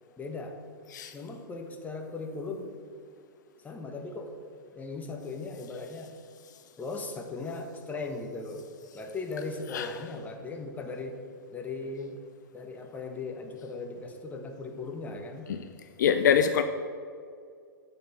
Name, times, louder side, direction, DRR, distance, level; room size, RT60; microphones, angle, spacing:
voice 1, 0.2-0.6 1.1-2.7 3.6-4.3 4.7-6.1 6.8-8.6 8.9-11.2 11.5-12.2 12.5-15.5, left 3 dB, 15° left, 3 dB, 1.1 m, -38 dB
voice 2, 16.0-16.6, left 8 dB, 60° left, 8 dB, 0.5 m, -24 dB
8.6 x 5.3 x 5.6 m, 2.2 s
figure-of-eight pair, 110°, 11 cm